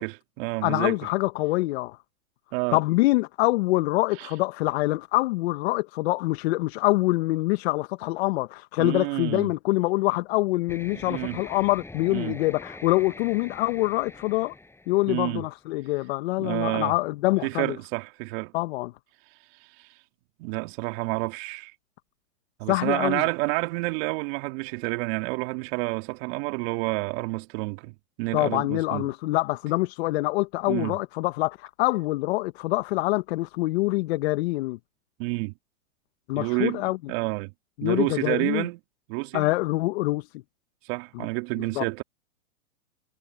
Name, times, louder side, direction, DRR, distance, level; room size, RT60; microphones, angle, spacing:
voice 1, 0.0-1.0 2.5-2.8 4.2-4.3 8.8-9.5 10.9-11.4 12.1-12.3 15.1-15.4 16.4-16.9 17.4-18.5 19.5-19.9 20.4-21.7 22.6-29.1 30.7-31.0 35.2-35.5 36.4-37.5 37.8-38.8 39.1-39.5 40.8-42.0, right 27 dB, 45° right, 2.3 m, -29 dB
voice 2, 0.6-2.0 2.7-14.5 14.9-17.8 18.5-18.9 22.7-23.2 28.3-34.8 36.3-37.0 37.8-38.6 39.3-40.4 41.1-41.2 41.6-41.8, left 20 dB, 50° left, 1.4 m, -25 dB
sound 1, 10.7-15.6, left 2 dB, 5° left, 7.3 m, -44 dB
hypercardioid pair, 125°, 42 cm